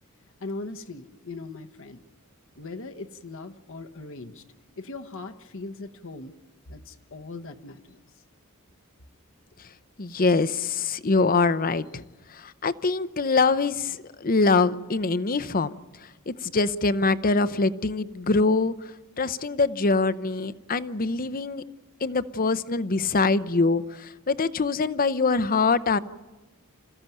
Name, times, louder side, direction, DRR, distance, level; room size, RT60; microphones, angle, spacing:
voice 1, 0.4-2.0 2.6-6.3 6.7-8.2, left 3 dB, 65° left, 5 dB, 1.1 m, -40 dB
voice 2, 10.0-12.0 12.3-15.7 16.3-18.7 19.2-21.6 22.0-26.0, left 3 dB, 40° left, 14 dB, 0.7 m, -24 dB
27.5 x 15.0 x 9.2 m, 1.2 s
head